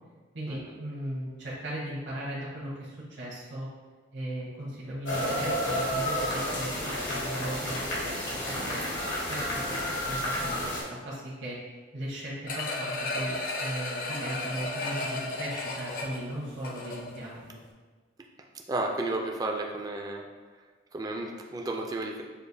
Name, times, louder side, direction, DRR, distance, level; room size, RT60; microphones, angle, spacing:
voice 1, 0.3-3.7 4.1-8.8 9.3-9.8 10.1-11.6 11.9-17.6, right 1 dB, 70° right, -8 dB, 1.0 m, -37 dB
sound 1, 5.1-10.8, equal, 80° left, 1.3 m, -31 dB
sound 2, 12.5-17.3 17.7-17.8, left 2 dB, 50° left, 0.5 m, -34 dB
voice 2, 18.7-20.2 20.9-22.2, right 2 dB, 20° right, 1 dB, 0.3 m, -32 dB
6.6 x 2.5 x 2.6 m, 1.4 s
head